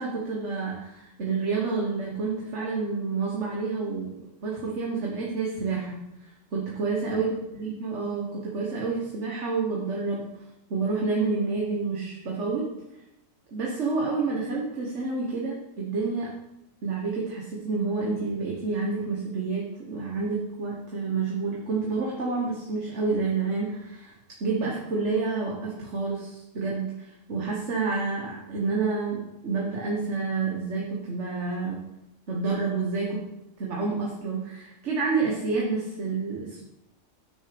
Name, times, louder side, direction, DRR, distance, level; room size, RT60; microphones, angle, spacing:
voice 1, 0.0-6.0 6.5-10.2 10.7-12.6 13.5-16.3 16.8-24.1 24.4-31.8 32.3-33.2 33.6-36.6, right 4 dB, 65° right, -2 dB, 1.7 m, -29 dB
9.4 x 6.3 x 5.2 m, 0.90 s
omnidirectional pair, 1.3 m